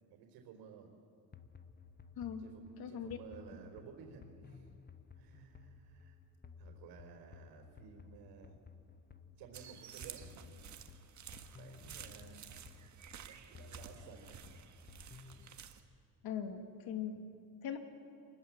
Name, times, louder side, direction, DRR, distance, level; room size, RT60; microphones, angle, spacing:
voice 1, 0.1-0.9 2.4-4.7 5.1-6.2 6.6-8.6 9.4-10.8 11.5-12.4 13.2-14.4, right 6 dB, 85° right, 2 dB, 4.0 m, -55 dB
sound 1, 1.3-15.6, left 5 dB, 25° left, 1.1 m, -57 dB
voice 2, 2.8-3.2 16.2-17.2 17.6-17.8, left 8 dB, 65° left, 6 dB, 2.4 m, -40 dB
sound 2, 9.5-15.8, right 8 dB, 45° right, 1.5 m, -52 dB
26.5 x 20.0 x 7.6 m, 2.5 s
cardioid pair, 110°, 40 cm